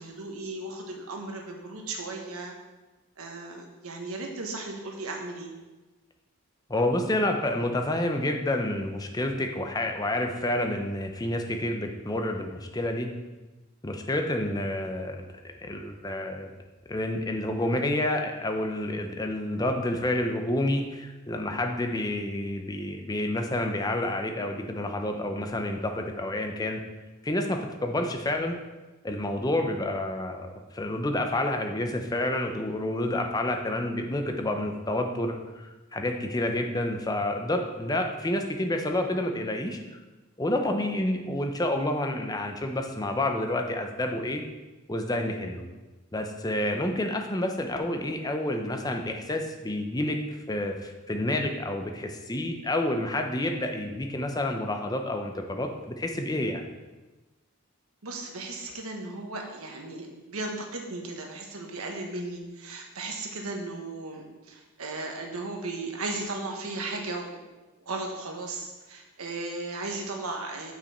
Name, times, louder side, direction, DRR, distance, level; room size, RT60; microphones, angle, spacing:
voice 1, 0.0-2.5 3.2-5.5 58.0-67.5 67.9-70.7, right 2 dB, 85° right, 2 dB, 1.2 m, -36 dB
voice 2, 6.7-13.1 13.8-15.2 15.6-16.5 16.9-26.8 27.2-28.6 29.0-39.8 40.4-44.4 44.9-45.6 46.1-50.2 50.5-56.7, left 1 dB, 15° left, 4 dB, 0.6 m, -29 dB
6.8 x 5.9 x 4.3 m, 1.2 s
head